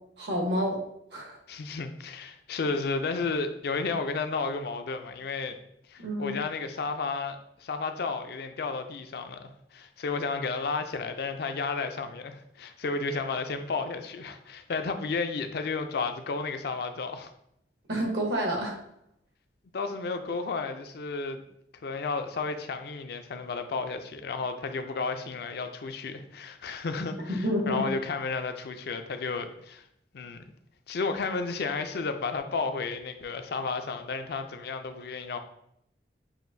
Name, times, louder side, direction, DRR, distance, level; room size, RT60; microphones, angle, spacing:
voice 1, 0.2-0.8 1.1-1.4 6.0-6.4 17.9-18.8 27.4-27.9, equal, 70° right, 0 dB, 1.1 m, -28 dB
voice 2, 1.5-5.6 5.9-17.3 19.7-21.4 21.8-29.9 30.1-30.4 30.9-35.4, left 4 dB, 60° left, 8 dB, 0.4 m, -32 dB
7.2 x 2.5 x 2.6 m, 0.75 s
head